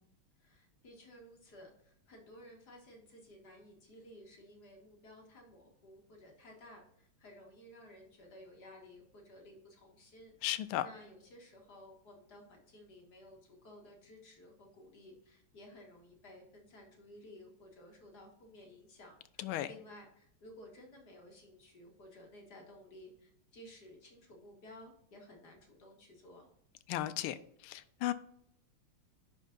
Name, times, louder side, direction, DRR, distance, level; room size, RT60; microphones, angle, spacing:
voice 1, 0.4-10.3 10.8-26.5, left 1 dB, 50° left, 2.0 m, -55 dB
voice 2, 10.4-10.9 19.4-19.7 26.9-27.4 27.6-28.1, left 14 dB, 80° left, 1.4 m, -35 dB
11.0 x 4.6 x 2.5 m
omnidirectional pair, 2.4 m